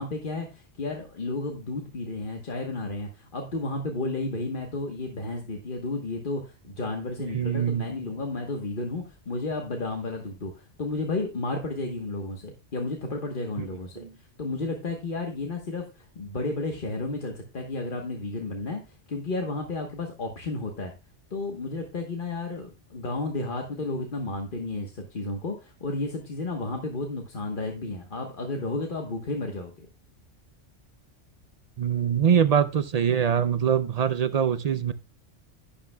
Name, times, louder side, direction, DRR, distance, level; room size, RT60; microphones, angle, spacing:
voice 1, 0.0-14.0 14.4-20.9 21.3-29.9, left 2 dB, 45° left, 3 dB, 1.3 m, -32 dB
voice 2, 7.2-7.9 13.6-13.7 14.0-14.1 31.8-34.9, right 8 dB, 60° right, 13 dB, 0.4 m, -23 dB
11.5 x 10.0 x 2.2 m, 0.27 s
omnidirectional pair, 1.3 m